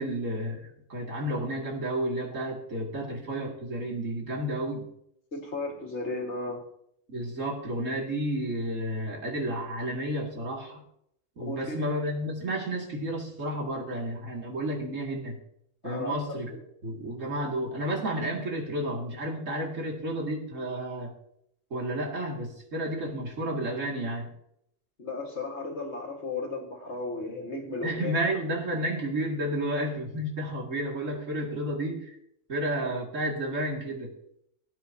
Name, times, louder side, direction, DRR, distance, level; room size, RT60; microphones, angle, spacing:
voice 1, 0.0-4.9 7.1-10.8 11.4-15.4 15.8-16.6 16.8-21.1 21.7-24.3 27.8-32.2 32.5-34.1, right 1 dB, 70° right, 0 dB, 2.6 m, -31 dB
voice 2, 5.3-6.7 11.5-11.9 15.8-16.4 25.0-28.1, left 3 dB, 55° left, 2 dB, 2.0 m, -34 dB
17.5 x 9.2 x 2.8 m, 0.74 s
omnidirectional pair, 1.4 m